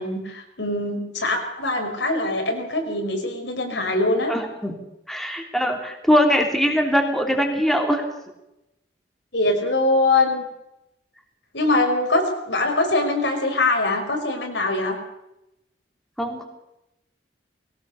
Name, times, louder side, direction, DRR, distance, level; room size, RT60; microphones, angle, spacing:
voice 1, 0.0-4.3 9.3-10.4 11.5-15.0, left 2 dB, 80° left, 3 dB, 5.5 m, -23 dB
voice 2, 4.3-4.8 5.1-8.1 16.2-16.4, equal, ahead, 2 dB, 3.0 m, -21 dB
21.0 x 18.0 x 6.9 m, 0.87 s
head